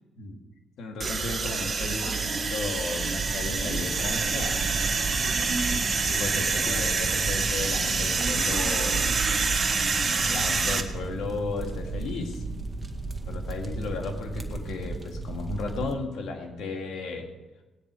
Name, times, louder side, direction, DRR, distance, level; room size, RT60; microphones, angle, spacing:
voice 1, 0.8-4.6 6.0-9.1 10.1-12.4 13.3-17.3, left 3 dB, 80° left, 3 dB, 2.4 m, -34 dB
sound 1, 1.0-10.8, right 4 dB, 35° right, 1.5 m, -26 dB
sound 2, 3.2-15.9, right 2 dB, 15° right, 1.8 m, -35 dB
18.5 x 9.7 x 4.9 m, 1.1 s
cardioid pair, 90°, 0 cm